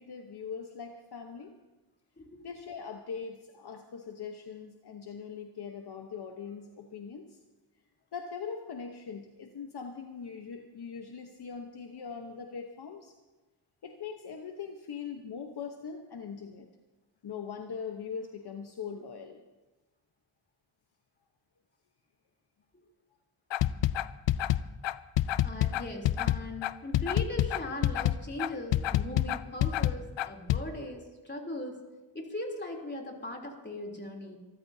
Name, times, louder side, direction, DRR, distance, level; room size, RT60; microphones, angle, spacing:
voice 1, 0.0-1.5 2.4-7.4 8.1-13.1 13.8-16.7 17.2-19.4, left 6 dB, 55° left, 4 dB, 1.2 m, -41 dB
sound 1, 23.5-30.6, left 13 dB, 75° left, 0.6 m, -27 dB
voice 2, 25.4-31.8 32.1-34.4, left 1 dB, 25° left, 0 dB, 3.3 m, -39 dB
26.0 x 14.0 x 2.8 m, 1.2 s
cardioid pair, 75°, 45 cm